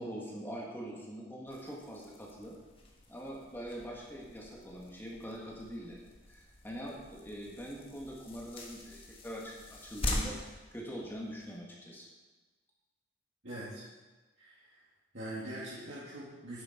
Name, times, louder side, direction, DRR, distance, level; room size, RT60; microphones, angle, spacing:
voice 1, 0.0-2.6 3.1-6.0 6.3-12.1, equal, 10° left, -3 dB, 1.9 m, -43 dB
sound 1, 1.5-11.6, left 1 dB, 25° left, 1.4 m, -43 dB
voice 2, 13.4-13.8 14.4-14.8 15.1-16.6, right 1 dB, 60° right, -10 dB, 2.7 m, -43 dB
10.5 x 9.7 x 4.5 m, 1.2 s
head